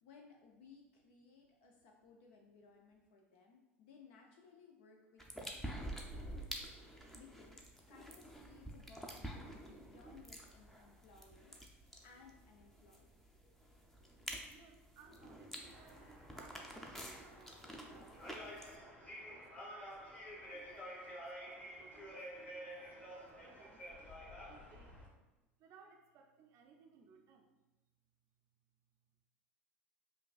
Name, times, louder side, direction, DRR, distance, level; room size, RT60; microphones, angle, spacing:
voice 1, 0.0-11.6 12.0-13.1, left 5 dB, 65° left, 1 dB, 0.4 m, -62 dB
sound 1, 5.2-18.8, equal, 5° left, 0.5 m, -49 dB
voice 2, 14.5-19.8 20.5-25.0 25.6-27.5, right 5 dB, 45° right, 3 dB, 0.4 m, -63 dB
sound 2, 15.6-25.1, equal, 25° left, 1.1 m, -51 dB
5.2 x 2.3 x 2.4 m, 1.0 s
hypercardioid pair, 80°, 7 cm